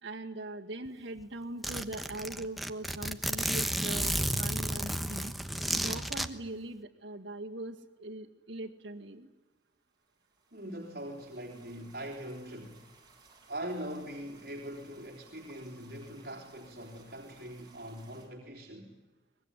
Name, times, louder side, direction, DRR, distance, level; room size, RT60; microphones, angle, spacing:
voice 1, 0.0-5.3 5.7-9.3, right 2 dB, 70° right, 2.0 m, -41 dB
Zipper (clothing), 0.8-0.9 1.2-1.3 1.6-6.3, equal, ahead, 1.2 m, -32 dB
sound 1, 9.9-18.3, right 4 dB, 20° right, 7.7 m, -61 dB
voice 2, 10.5-12.9 13.5-18.9, right 1 dB, 55° right, 3.5 m, -42 dB
24.0 x 21.0 x 10.0 m
head